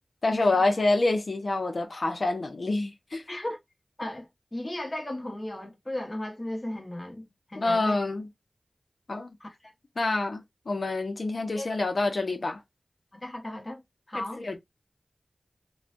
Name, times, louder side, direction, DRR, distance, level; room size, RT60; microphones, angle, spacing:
voice 1, 0.2-3.2 7.6-8.3 9.1-9.3 10.0-12.6 14.1-14.6, left 2 dB, 70° left, 0.8 m, -27 dB
voice 2, 4.0-8.0 9.4-9.7 11.5-11.8 13.1-13.8 14.1-14.5, left 1 dB, 35° left, 1.1 m, -36 dB
3.2 x 2.3 x 2.5 m
wide cardioid pair, 45°, 0 cm